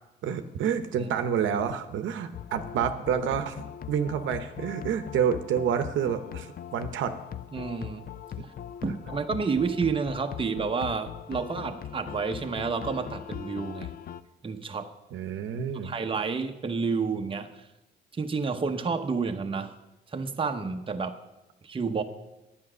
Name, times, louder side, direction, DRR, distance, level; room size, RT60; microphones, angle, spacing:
voice 1, 0.2-7.2 8.4-8.5 15.1-15.9, right 8 dB, 75° right, 8 dB, 0.8 m, -29 dB
sound 1, 2.3-14.2, left 9 dB, 50° left, 0.5 m, -40 dB
voice 2, 7.5-8.1 8.8-13.9 14.4-14.9 15.8-17.5 18.1-19.7 20.1-21.2 21.6-22.0, right 5 dB, 25° right, 5 dB, 0.9 m, -30 dB
9.5 x 8.9 x 6.2 m, 1.0 s
cardioid pair, 90°, 20 cm